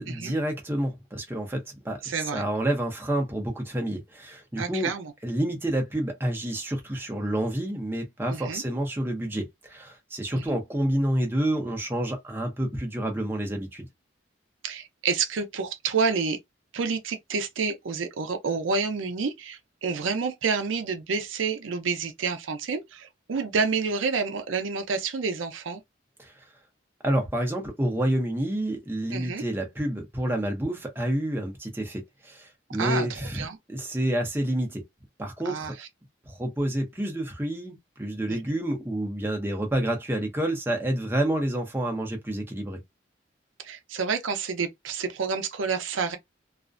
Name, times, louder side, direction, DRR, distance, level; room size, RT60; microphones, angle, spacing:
voice 1, 0.0-4.9 5.2-13.9 26.2-26.4 27.0-34.8 35.2-35.7 36.3-42.8, right 1 dB, 10° right, 0.6 m, -29 dB
voice 2, 2.0-2.4 4.5-5.1 8.3-8.6 10.3-10.6 14.6-16.4 16.7-25.8 29.1-29.4 32.8-33.6 35.4-35.9 38.3-38.4 43.6-46.2, right 5 dB, 90° right, 0.5 m, -29 dB
2.4 x 2.1 x 2.4 m
head